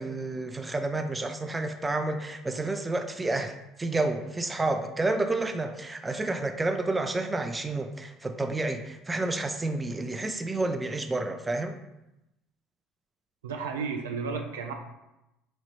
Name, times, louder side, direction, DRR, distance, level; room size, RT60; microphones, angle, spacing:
voice 1, 0.0-3.5 3.8-11.8, right 2 dB, 20° right, 7 dB, 0.4 m, -30 dB
voice 2, 13.4-14.7, right 5 dB, 85° right, 4 dB, 0.4 m, -33 dB
3.9 x 3.0 x 3.1 m, 0.92 s
hypercardioid pair, 70°, 0 cm